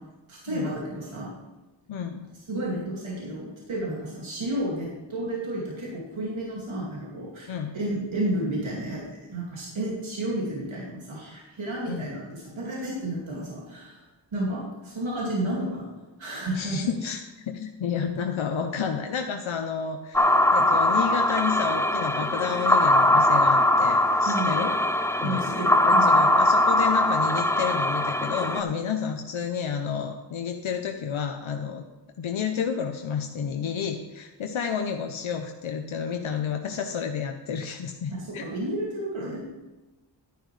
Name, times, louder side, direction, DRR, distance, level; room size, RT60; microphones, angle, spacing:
voice 1, 0.3-1.3 2.5-14.0 14.3-15.9 16.2-16.9 24.2-24.7 25.2-26.2 38.1-39.4, right 1 dB, 85° right, -5 dB, 2.4 m, -31 dB
voice 2, 1.9-2.3 7.5-7.7 11.9-12.1 16.5-24.7 25.2-31.8 32.2-38.5, left 7 dB, 90° left, 4 dB, 0.8 m, -30 dB
sound 1, 20.1-28.6, left 1 dB, 5° left, 0.5 m, -21 dB
11.0 x 10.0 x 3.2 m, 1.1 s
wide cardioid pair, 90°, 46 cm